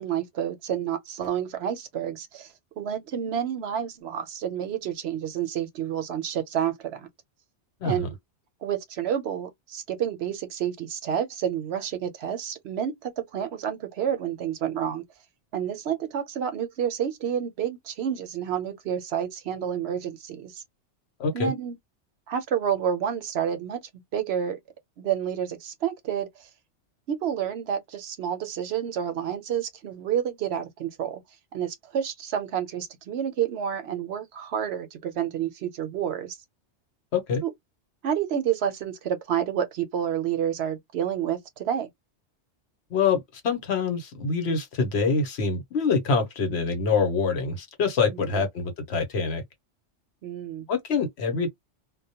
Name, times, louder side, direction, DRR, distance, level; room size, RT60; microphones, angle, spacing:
voice 1, 0.0-7.1 7.8-8.1 8.6-15.0 15.5-20.6 21.3-21.7 22.3-23.8 24.1-24.6 25.0-26.5 27.1-31.2 31.5-36.4 37.4-37.5 38.0-41.9 48.1-48.4 50.2-50.7, right 9 dB, 70° right, 0.8 m, -29 dB
voice 2, 21.2-21.5 37.1-37.4 42.9-49.4 50.7-51.5, left 4 dB, 65° left, 1.0 m, -25 dB
2.2 x 2.1 x 2.7 m
omnidirectional pair, 1.2 m